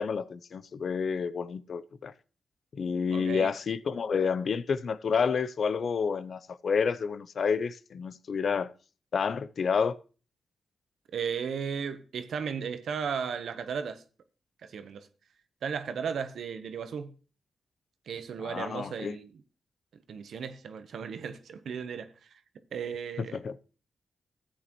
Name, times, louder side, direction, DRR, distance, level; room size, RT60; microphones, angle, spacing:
voice 1, 0.0-2.1 2.7-8.7 9.1-10.0 18.4-19.2 23.3-23.6, left 6 dB, 65° left, 0.6 m, -29 dB
voice 2, 3.1-3.5 11.1-14.0 14.6-15.1 15.6-17.1 18.1-19.3 20.1-22.1 22.7-23.4, right 6 dB, 80° right, 0.9 m, -35 dB
14.0 x 8.6 x 3.0 m
cardioid pair, 55°, 0 cm